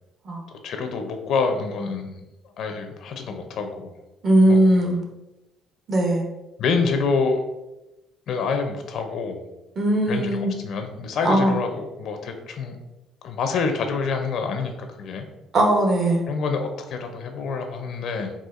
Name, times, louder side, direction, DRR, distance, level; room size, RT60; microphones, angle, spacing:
voice 1, 0.5-2.1 2.6-4.0 4.5-4.6 6.6-7.4 8.3-9.4 10.1-12.8 13.2-15.3 16.3-18.3, left 4 dB, 65° left, 5 dB, 0.4 m, -27 dB
voice 2, 4.2-5.0 5.9-6.3 9.8-10.5 11.2-11.6 15.5-16.2, right 1 dB, 45° right, 1 dB, 0.8 m, -19 dB
4.2 x 2.4 x 2.4 m, 0.98 s
cardioid pair, 115°, 0 cm